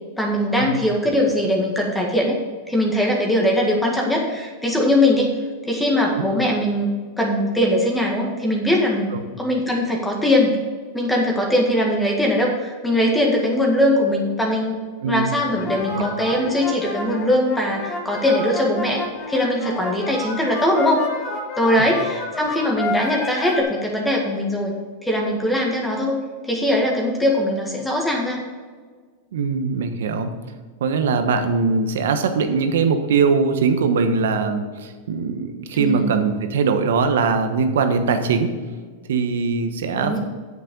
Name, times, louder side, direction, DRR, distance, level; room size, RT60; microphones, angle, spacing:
voice 1, 0.2-2.4 2.7-5.3 5.7-6.9 7.2-10.6 10.9-14.8 15.0-21.0 21.6-24.8 25.0-28.4 35.7-36.3 40.0-40.2, left 1 dB, 5° left, 0 dB, 1.8 m, -21 dB
voice 2, 15.0-15.4 15.9-16.1 21.7-21.8 29.3-30.3 30.8-38.5 39.1-40.2, right 5 dB, 80° right, 8 dB, 1.2 m, -21 dB
sound 1, 15.5-23.6, left 2 dB, 40° left, 2.1 m, -30 dB
8.3 x 7.3 x 5.3 m, 1.5 s
hypercardioid pair, 125°, 0 cm